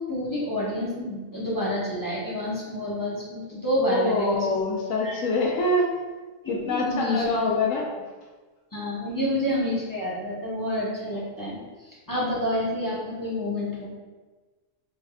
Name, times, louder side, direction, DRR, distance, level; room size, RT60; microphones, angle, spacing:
voice 1, 0.0-4.5 5.0-5.2 6.4-7.8 8.7-11.6 11.8-13.9, left 1 dB, 20° left, -8 dB, 0.7 m, -28 dB
voice 2, 3.8-5.9 6.5-7.9, left 2 dB, 90° left, -1 dB, 1.0 m, -25 dB
3.3 x 3.3 x 2.2 m, 1.3 s
omnidirectional pair, 1.3 m